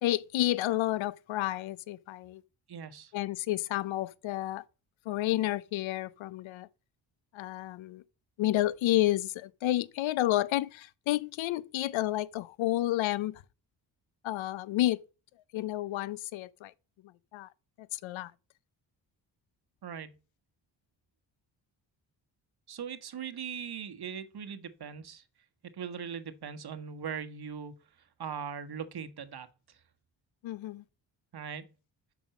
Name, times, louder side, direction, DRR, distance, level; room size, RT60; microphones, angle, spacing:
voice 1, 0.0-2.4 3.1-4.6 5.1-6.7 7.3-8.0 8.4-13.4 14.2-15.0 15.5-16.7 17.3-17.5 17.8-18.3 30.4-30.8, left 15 dB, 90° left, 0.6 m, -30 dB
voice 2, 2.7-3.1 19.8-20.1 22.7-25.2 25.7-27.7 28.2-29.5 31.3-31.7, right 7 dB, 55° right, 1.3 m, -40 dB
7.2 x 6.1 x 5.9 m
cardioid pair, 70°, 45 cm